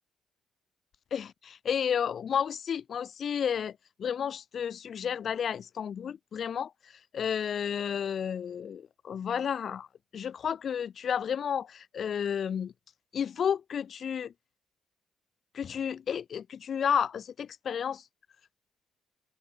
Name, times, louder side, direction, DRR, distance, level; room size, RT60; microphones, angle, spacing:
voice 1, 1.1-9.9 10.1-12.7 13.1-14.3 15.5-18.0, left 8 dB, 55° left, 4.2 m, -32 dB
open air
cardioid pair, 90°, 0 cm